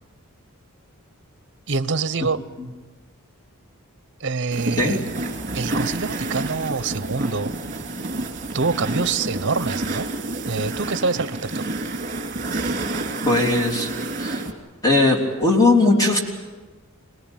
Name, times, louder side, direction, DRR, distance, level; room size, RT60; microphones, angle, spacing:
voice 1, 1.7-2.4 4.2-5.1 5.5-7.5 8.5-10.1 10.5-11.6, right 4 dB, 55° right, 14 dB, 0.8 m, -25 dB
sound 1, 4.5-14.5, right 2 dB, 35° right, 2.9 m, -29 dB
voice 2, 13.2-13.9 14.2-14.4 14.8-16.2, left 2 dB, 15° left, 0 dB, 3.3 m, -18 dB
26.5 x 19.0 x 9.0 m, 1.3 s
head